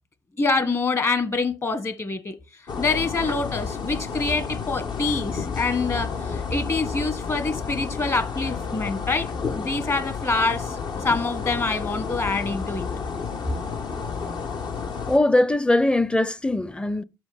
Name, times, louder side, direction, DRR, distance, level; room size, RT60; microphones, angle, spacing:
voice 1, 0.4-2.3 2.8-10.8 11.0-12.9, left 3 dB, 30° left, 1.5 m, -26 dB
sound 1, 2.7-15.2, left 5 dB, 60° left, 1.3 m, -31 dB
voice 2, 15.1-17.0, left 2 dB, 10° left, 0.6 m, -21 dB
6.2 x 4.8 x 5.3 m
hypercardioid pair, 55°, 9 cm